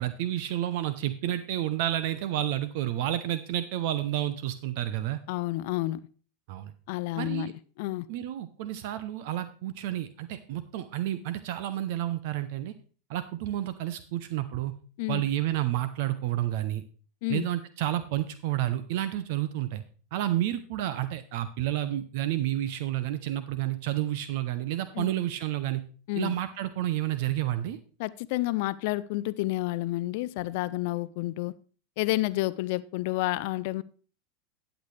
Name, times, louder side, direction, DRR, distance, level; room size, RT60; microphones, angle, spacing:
voice 1, 0.0-5.2 6.5-6.7 7.2-7.5 8.1-12.7 13.1-14.7 15.1-16.8 17.3-19.8 20.1-25.8 26.2-27.8, right 13 dB, 60° right, 0.6 m, -30 dB
voice 2, 5.3-6.0 6.9-8.1 15.0-15.2 17.2-17.5 24.9-25.1 26.1-26.3 28.0-31.5 32.0-33.8, left 18 dB, 60° left, 0.4 m, -30 dB
12.0 x 8.1 x 3.3 m
hypercardioid pair, 95°, 0 cm